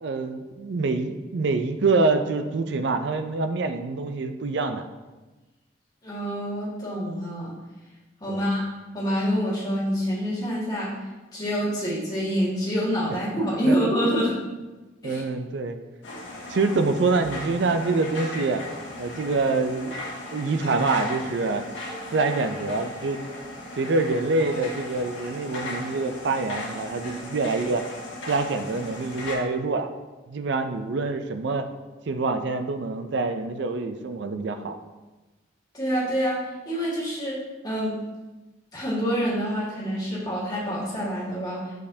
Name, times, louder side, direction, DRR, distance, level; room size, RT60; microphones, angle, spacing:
voice 1, 0.0-4.8 8.3-8.5 13.1-13.2 13.7-13.9 14.5-14.6 15.0-15.8 16.5-18.6 19.0-20.0 20.3-21.6 22.1-23.2 23.8-27.8 28.3-29.9 30.3-31.7 32.1-34.8, right 3 dB, 60° right, 8 dB, 0.4 m, -26 dB
voice 2, 6.0-7.5 8.2-8.6 8.9-10.9 11.3-14.3 15.0-15.2 35.7-36.4 36.6-37.4 37.6-37.9 38.7-41.7, equal, 20° left, -8 dB, 1.7 m, -26 dB
sound 1, 16.0-29.3, left 1 dB, 70° left, 1.3 m, -37 dB
6.5 x 5.3 x 2.7 m, 1.2 s
head